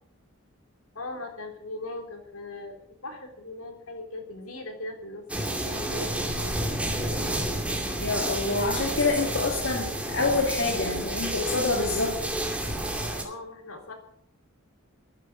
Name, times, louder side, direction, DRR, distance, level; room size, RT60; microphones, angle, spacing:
voice 1, 1.0-7.6 13.2-13.9, left 2 dB, 85° left, 4 dB, 3.6 m, -40 dB
sound 1, 5.3-13.2, right 1 dB, 5° right, 2.5 m, -30 dB
voice 2, 8.0-12.2, left 3 dB, 60° left, 1 dB, 2.3 m, -26 dB
13.0 x 10.0 x 8.6 m, 0.68 s
head